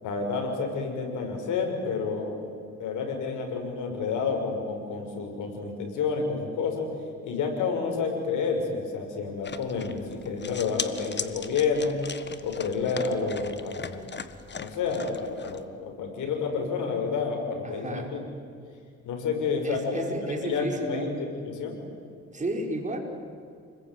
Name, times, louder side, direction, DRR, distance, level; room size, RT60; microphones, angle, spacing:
voice 1, 0.0-2.3 2.8-6.9 7.2-12.0 12.4-14.1 14.6-18.2 19.1-20.0 20.4-21.8, left 5 dB, 80° left, 3 dB, 6.1 m, -29 dB
sound 1, 9.4-15.6, left 5 dB, 35° left, 1.6 m, -39 dB
voice 2, 17.6-18.1 19.6-21.1 22.3-23.0, right 1 dB, 25° right, 2 dB, 5.5 m, -32 dB
29.0 x 21.5 x 9.6 m, 2.3 s
cardioid pair, 90°, 30 cm